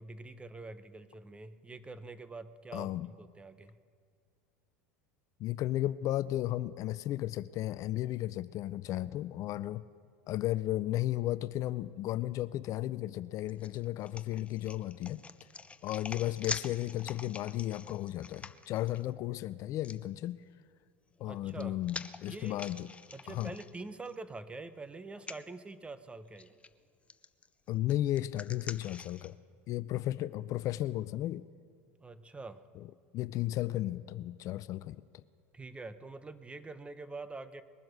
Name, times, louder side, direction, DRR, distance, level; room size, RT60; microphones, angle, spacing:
voice 1, 0.0-3.8 21.2-21.8 22.3-22.7 23.1-26.5 32.0-32.6 35.5-37.6, right 3 dB, 15° right, 12 dB, 0.9 m, -45 dB
voice 2, 2.7-3.1 5.4-9.8 10.3-15.2 15.8-20.4 21.2-22.9 23.3-23.6 27.7-29.4 29.7-31.5 32.8-32.9 33.1-35.2, left 14 dB, 50° left, 16 dB, 0.4 m, -34 dB
sound 1, 13.5-19.0 19.8-20.0 21.1-24.2 24.5-24.6 25.2-25.4 26.4-26.7 27.1-29.3, left 4 dB, 15° left, 0.7 m, -45 dB
21.0 x 10.5 x 6.5 m, 2.2 s
hypercardioid pair, 90°, 7 cm